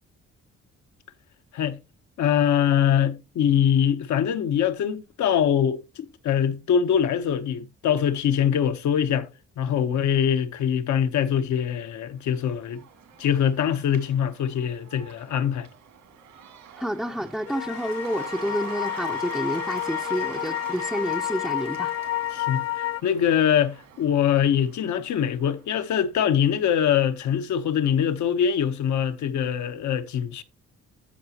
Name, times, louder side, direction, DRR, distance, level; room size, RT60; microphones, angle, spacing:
voice 1, 2.2-9.3 9.6-12.8 13.2-15.7 22.3-30.4, left 8 dB, 70° left, 1.1 m, -23 dB
Cheering / Applause / Crowd, 12.2-25.6, right 8 dB, 75° right, 2.4 m, -43 dB
voice 2, 16.8-21.9, equal, ahead, 0.6 m, -29 dB
sound 1, 17.5-23.0, left 14 dB, 50° left, 0.5 m, -30 dB
14.0 x 4.9 x 2.9 m
cardioid pair, 90°, 30 cm